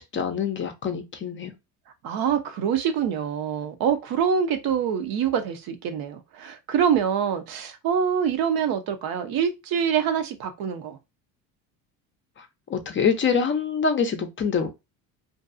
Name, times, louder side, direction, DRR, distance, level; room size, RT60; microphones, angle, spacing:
voice 1, 0.0-1.5 12.4-14.7, left 6 dB, 30° left, 0.5 m, -25 dB
voice 2, 2.0-11.0, right 8 dB, 60° right, 0.6 m, -25 dB
2.5 x 2.3 x 2.5 m
supercardioid pair, 80°, 41 cm